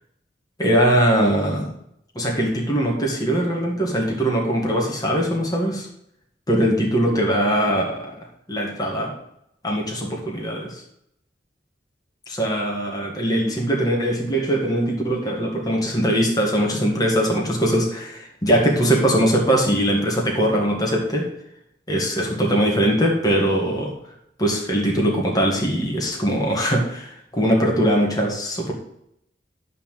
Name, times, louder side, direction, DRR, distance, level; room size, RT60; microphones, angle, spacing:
voice 1, 0.6-1.7 2.2-5.9 6.5-8.1 8.5-9.1 9.6-10.8 12.4-21.3 21.9-23.9 24.4-28.7, right 1 dB, 20° left, -2 dB, 1.9 m, -21 dB
11.5 x 4.3 x 7.4 m, 0.75 s
head